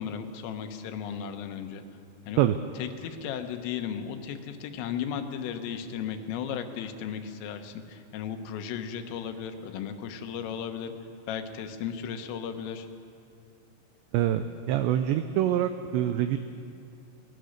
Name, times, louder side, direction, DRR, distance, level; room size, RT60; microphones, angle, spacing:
voice 1, 0.0-1.8 2.3-2.4 2.8-10.9 11.3-12.9, left 8 dB, 80° left, 7 dB, 3.7 m, -35 dB
voice 2, 14.1-16.4, right 11 dB, 90° right, 9 dB, 2.5 m, -25 dB
22.5 x 19.5 x 6.5 m, 2.6 s
omnidirectional pair, 5.8 m